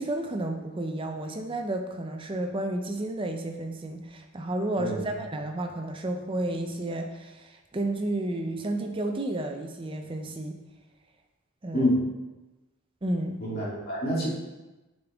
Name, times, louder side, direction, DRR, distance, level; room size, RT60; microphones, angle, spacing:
voice 1, 0.0-10.6 11.6-11.9 13.0-13.4, right 1 dB, 25° right, 4 dB, 0.5 m, -31 dB
voice 2, 4.8-5.2 11.7-12.0 13.4-14.3, equal, 45° left, -7 dB, 2.1 m, -27 dB
5.7 x 5.2 x 3.5 m, 1.1 s
head